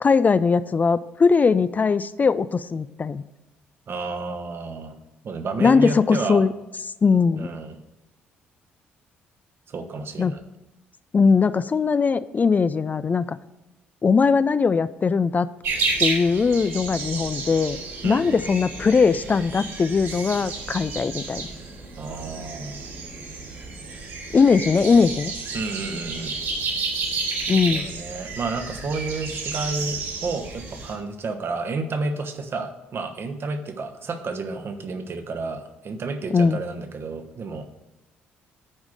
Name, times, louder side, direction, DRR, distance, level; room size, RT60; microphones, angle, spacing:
voice 1, 0.0-3.2 5.6-6.5 7.0-7.5 10.2-10.3 11.1-13.4 14.0-15.5 16.0-17.8 18.0-21.5 24.3-25.3 27.5-27.9 36.3-36.6, left 5 dB, 30° left, 14 dB, 0.3 m, -20 dB
voice 2, 3.9-5.0 5.2-6.5 7.4-7.8 9.7-10.4 18.0-18.4 22.0-22.9 25.5-26.4 27.7-37.7, right 3 dB, 50° right, 6 dB, 1.1 m, -31 dB
sound 1, 15.6-30.9, right 4 dB, 75° right, 2.6 m, -31 dB
8.9 x 4.8 x 6.3 m, 1.0 s
hypercardioid pair, 50°, 5 cm